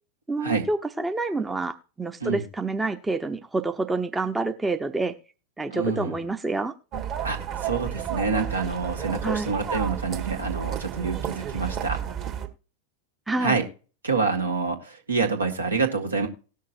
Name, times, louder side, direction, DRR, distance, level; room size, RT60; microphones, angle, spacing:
voice 1, 0.3-5.1 5.6-6.7 9.2-9.5 13.3-13.6, right 3 dB, 10° right, 8 dB, 0.7 m, -28 dB
voice 2, 5.7-6.1 7.2-12.0 13.4-13.6 14.0-16.3, right 4 dB, 75° right, 4 dB, 1.8 m, -27 dB
sound 1, 6.9-12.5, right 9 dB, 35° right, 1.5 m, -32 dB
18.5 x 6.5 x 2.5 m, 0.36 s
figure-of-eight pair, 90°, 0 cm